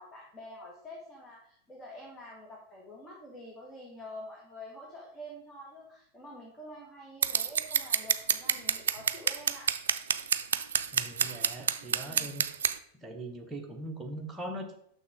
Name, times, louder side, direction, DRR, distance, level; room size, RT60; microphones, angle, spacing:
voice 1, 0.0-9.7 12.0-12.3, left 1 dB, 15° left, -2 dB, 1.6 m, -47 dB
Scissors, 7.2-12.7, right 7 dB, 65° right, 0.3 m, -27 dB
voice 2, 10.9-12.5 13.0-14.7, right 1 dB, 10° right, 2 dB, 1.1 m, -41 dB
6.6 x 6.1 x 3.7 m, 0.71 s
figure-of-eight pair, 90°, 0 cm